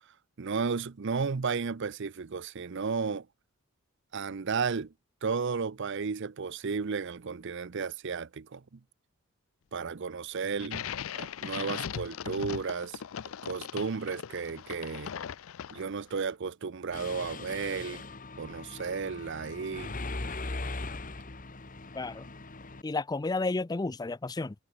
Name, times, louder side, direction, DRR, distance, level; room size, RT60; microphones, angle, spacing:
voice 1, 0.4-3.3 4.1-4.9 5.2-8.6 9.7-10.9 11.2-13.0 13.4-15.1 15.7-18.0 18.4-19.9, right 5 dB, 60° right, 0.6 m, -33 dB
sound 1, 10.6-16.1, left 8 dB, 75° left, 0.5 m, -39 dB
Mechanisms, 16.9-22.8, left 2 dB, 40° left, 1.6 m, -40 dB
voice 2, 21.9-22.3 22.8-24.5, left 3 dB, 20° left, 0.4 m, -32 dB
head